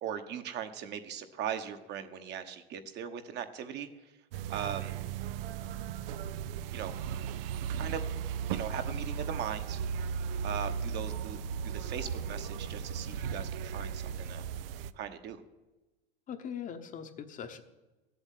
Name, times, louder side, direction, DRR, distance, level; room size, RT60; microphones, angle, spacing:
voice 1, 0.0-3.9 4.5-4.9 6.7-6.9 7.8-8.0 8.5-9.8 10.4-11.4 11.6-14.4 14.9-15.4, right 8 dB, 35° right, 8 dB, 1.2 m, -39 dB
sound 1, 4.3-14.9, right 7 dB, 70° right, 0.7 m, -36 dB
voice 2, 16.3-17.6, left 8 dB, 25° left, 8 dB, 1.0 m, -41 dB
15.0 x 8.0 x 9.3 m, 1.1 s
supercardioid pair, 140°, 29 cm